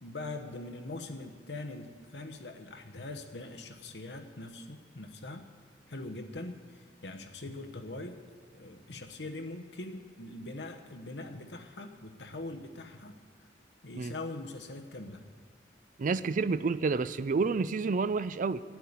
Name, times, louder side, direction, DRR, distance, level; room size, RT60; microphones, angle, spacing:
voice 1, 0.0-5.4 5.9-8.2 8.5-13.2 13.8-15.2, left 2 dB, 70° left, 5 dB, 1.1 m, -42 dB
voice 2, 16.0-18.6, right 4 dB, 45° right, 15 dB, 0.4 m, -29 dB
9.6 x 9.3 x 8.5 m, 2.1 s
head